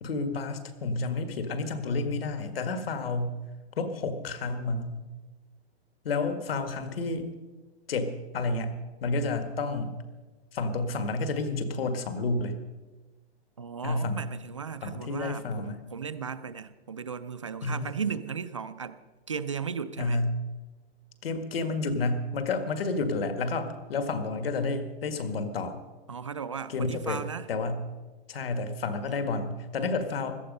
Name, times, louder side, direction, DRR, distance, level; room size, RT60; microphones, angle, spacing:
voice 1, 0.0-3.4 3.8-5.0 6.0-7.3 7.9-10.0 10.5-12.5 13.8-14.2 14.8-15.8 17.6-17.9 20.0-20.4 21.2-25.8 26.7-27.2 27.5-27.8 28.3-30.4, left 3 dB, 60° left, 8 dB, 1.9 m, -30 dB
voice 2, 13.6-19.0 19.3-20.2 26.1-27.5, right 6 dB, 30° right, 12 dB, 0.4 m, -36 dB
17.0 x 13.0 x 5.3 m, 1.2 s
hypercardioid pair, 180°, 33 cm